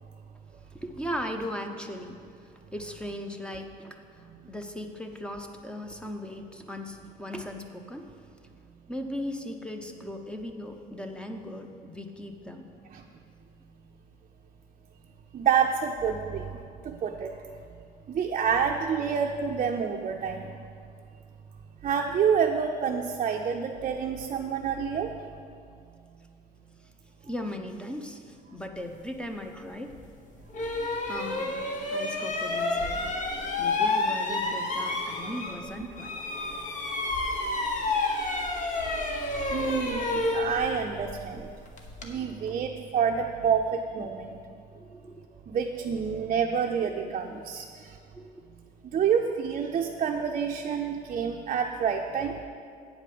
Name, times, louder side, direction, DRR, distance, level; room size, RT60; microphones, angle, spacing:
voice 1, 0.7-2.2 2.7-4.0 4.5-8.1 8.9-12.7 16.1-16.3 27.2-29.9 31.1-31.6 31.9-33.0 33.6-36.2 40.0-40.1 42.2-42.6 44.8-45.3 47.0-47.4 48.1-48.4, left 1 dB, 5° left, 4 dB, 0.7 m, -38 dB
voice 2, 15.3-17.3 18.1-20.5 21.8-25.1 39.5-41.5 42.0-44.4 45.5-47.6 48.9-52.4, right 7 dB, 45° right, 1 dB, 0.6 m, -28 dB
sound 1, 29.9-30.0 30.5-35.7 36.0-42.1, left 2 dB, 50° left, 1.2 m, -30 dB
8.5 x 5.0 x 7.6 m, 2.3 s
cardioid pair, 110°, 17 cm